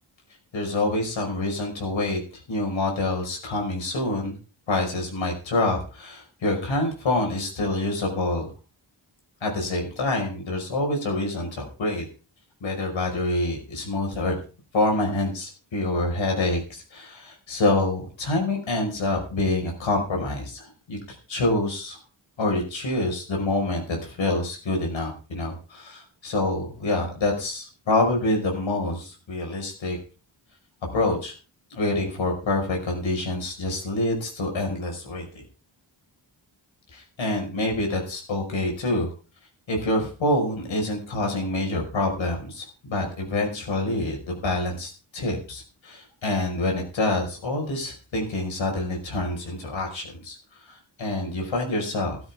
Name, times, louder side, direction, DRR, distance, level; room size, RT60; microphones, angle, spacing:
voice 1, 0.5-2.2 2.5-4.4 4.7-8.5 9.4-12.1 12.6-14.4 14.7-21.0 21.3-22.0 22.4-30.0 30.9-31.3 31.7-35.3 36.9-39.1 39.7-50.4 50.7-52.2, left 2 dB, 85° left, 1 dB, 5.5 m, -26 dB
15.0 x 14.0 x 3.7 m, 0.35 s
wide cardioid pair, 85°, 45 cm